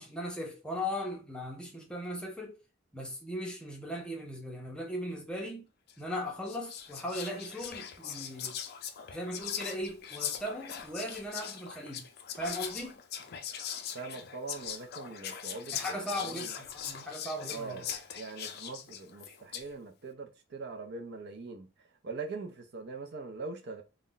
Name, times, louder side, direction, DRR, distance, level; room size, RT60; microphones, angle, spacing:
voice 1, 0.0-2.6 2.9-5.6 6.0-8.6 9.1-12.1 12.4-13.0 15.7-17.8, equal, 5° left, 0.6 m, -38 dB
Whispering, 5.9-6.1 6.5-19.7, left 9 dB, 50° left, 0.4 m, -41 dB
voice 2, 13.9-15.7 16.1-16.5 17.5-23.8, right 4 dB, 55° right, 0.5 m, -42 dB
2.4 x 2.1 x 3.7 m
head